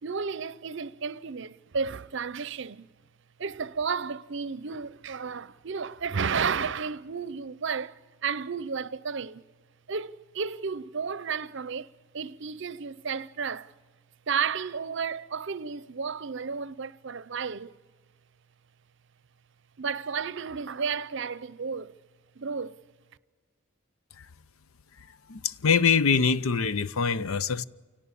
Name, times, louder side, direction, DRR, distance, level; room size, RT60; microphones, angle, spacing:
voice 1, 0.0-2.9 3.4-9.4 9.9-13.7 14.3-17.7 19.8-22.0 22.4-22.8, right 5 dB, 60° right, 0.6 m, -32 dB
voice 2, 25.3-27.6, left 5 dB, 80° left, 0.6 m, -24 dB
28.5 x 18.0 x 8.4 m
head